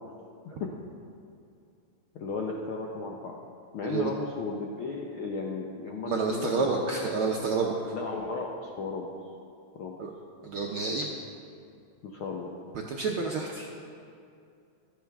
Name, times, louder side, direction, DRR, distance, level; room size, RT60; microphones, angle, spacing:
voice 1, 0.4-0.8 2.1-3.4 3.7-6.7 7.9-9.1 9.7-10.0 12.0-12.5, left 4 dB, 70° left, 0 dB, 1.2 m, -35 dB
voice 2, 6.1-7.8 10.0-10.1 10.4-11.1 12.9-13.7, right 4 dB, 70° right, -1 dB, 1.2 m, -29 dB
15.0 x 12.5 x 3.5 m, 2.5 s
omnidirectional pair, 3.4 m